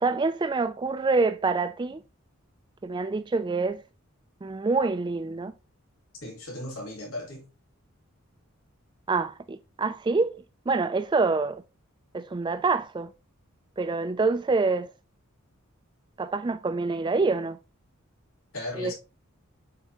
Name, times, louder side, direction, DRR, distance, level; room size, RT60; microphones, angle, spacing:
voice 1, 0.0-2.0 2.8-3.8 4.4-5.5 9.1-10.4 10.7-11.6 12.1-13.1 13.8-14.9 16.2-17.6 18.8-18.9, right 3 dB, 20° right, 0.3 m, -26 dB
voice 2, 6.2-7.5 18.5-18.9, left 1 dB, 85° left, 3.0 m, -36 dB
7.2 x 4.6 x 3.0 m
head